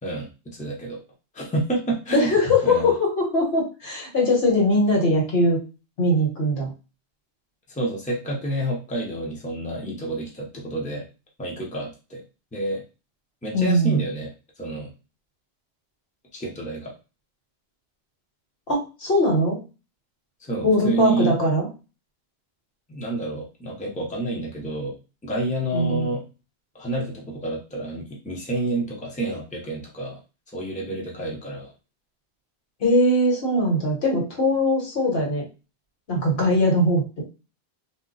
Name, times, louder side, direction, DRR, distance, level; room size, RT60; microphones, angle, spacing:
voice 1, 0.0-1.0 1.3-2.3 2.6-2.9 7.7-11.1 11.4-12.2 12.5-12.8 13.4-14.9 16.3-16.9 20.4-21.3 22.9-26.2 26.7-30.2 30.5-31.7, right 2 dB, 10° left, -2 dB, 0.7 m, -29 dB
voice 2, 2.1-5.6 6.0-6.7 13.5-14.0 18.7-19.6 20.6-21.7 25.7-26.1 32.8-35.4 36.1-37.2, left 1 dB, 70° left, -1 dB, 1.5 m, -21 dB
2.7 x 2.2 x 3.9 m, 0.31 s
omnidirectional pair, 1.1 m